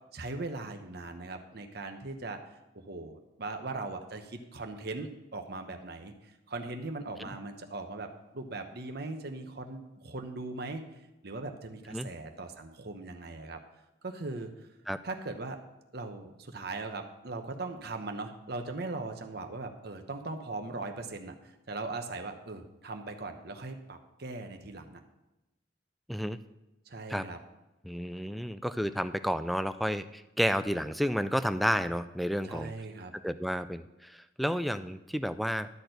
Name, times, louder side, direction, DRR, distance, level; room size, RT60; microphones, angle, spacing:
voice 1, 0.1-2.4 2.8-10.8 11.2-13.6 14.0-14.5 15.0-15.6 15.9-21.3 21.7-25.0 26.9-27.4 32.4-33.1, right 3 dB, 55° right, 5 dB, 1.0 m, -39 dB
voice 2, 27.8-32.7 33.2-35.7, equal, ahead, 12 dB, 0.3 m, -31 dB
12.0 x 4.4 x 7.9 m, 0.97 s
head